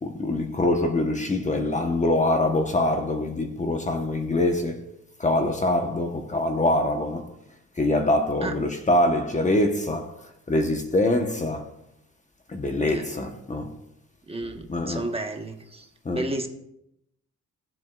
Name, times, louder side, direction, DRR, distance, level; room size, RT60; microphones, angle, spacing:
voice 1, 0.0-4.9 5.2-7.3 7.8-11.7 12.5-13.8 14.4-15.2 16.0-16.4, left 1 dB, 25° left, 1.1 m, -24 dB
voice 2, 14.3-15.8 16.1-16.5, right 2 dB, 20° right, 1.4 m, -31 dB
19.0 x 7.7 x 2.5 m
cardioid pair, 90°, 30 cm